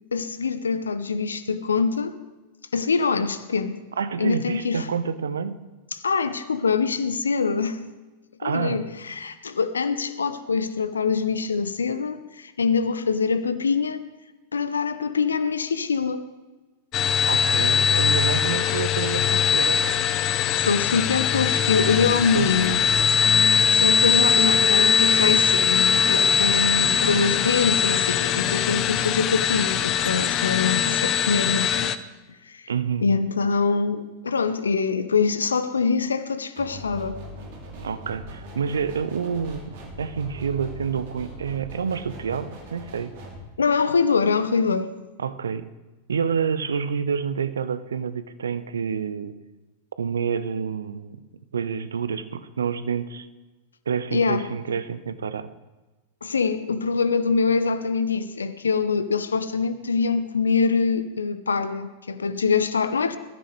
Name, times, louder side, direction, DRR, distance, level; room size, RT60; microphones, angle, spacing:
voice 1, 0.1-2.2 2.7-3.8 4.2-4.9 5.9-7.8 8.4-14.0 14.5-16.3 20.5-22.8 23.7-31.9 32.5-32.7 33.0-37.2 43.6-44.9 54.1-54.4 56.2-63.2, left 5 dB, 75° left, 13 dB, 0.8 m, -24 dB
voice 2, 4.0-5.6 8.4-8.8 17.3-19.8 22.3-22.9 32.7-33.1 37.8-43.1 45.2-45.7 46.1-49.4 50.0-51.2 51.5-53.3 53.9-55.5, right 6 dB, 70° right, 13 dB, 0.7 m, -28 dB
sound 1, 16.9-32.0, left 7 dB, 35° left, 0.6 m, -21 dB
sound 2, 36.6-43.4, equal, 50° right, 3.0 m, -40 dB
21.5 x 14.0 x 3.3 m, 1.2 s
figure-of-eight pair, 90°, 0 cm